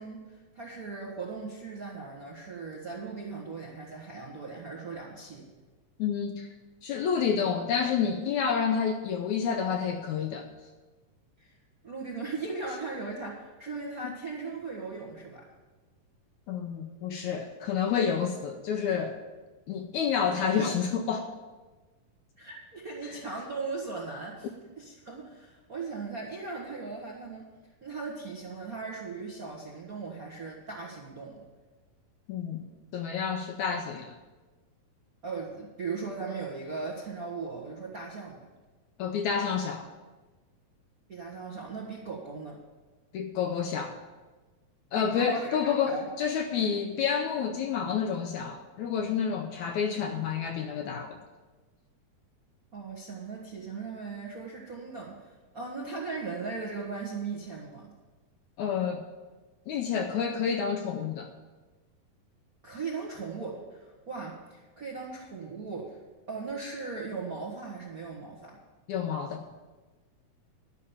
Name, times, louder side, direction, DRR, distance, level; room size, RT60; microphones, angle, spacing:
voice 1, 0.0-5.4 11.4-11.5 11.8-15.5 22.4-24.5 24.8-27.5 27.8-31.4 35.2-38.4 41.1-42.6 45.0-45.6 45.9-46.0 52.7-57.9 62.6-66.0 66.3-68.6, right 4 dB, 80° right, -2 dB, 0.8 m, -38 dB
voice 2, 6.0-6.5 6.8-10.5 14.0-14.1 16.5-19.2 19.7-21.3 23.0-23.2 32.3-32.6 32.9-34.1 39.0-39.9 43.1-44.0 44.9-51.2 58.6-59.0 59.7-61.3 68.9-69.4, left 7 dB, 80° left, 5 dB, 1.7 m, -29 dB
11.5 x 5.6 x 8.7 m, 1.3 s
omnidirectional pair, 4.0 m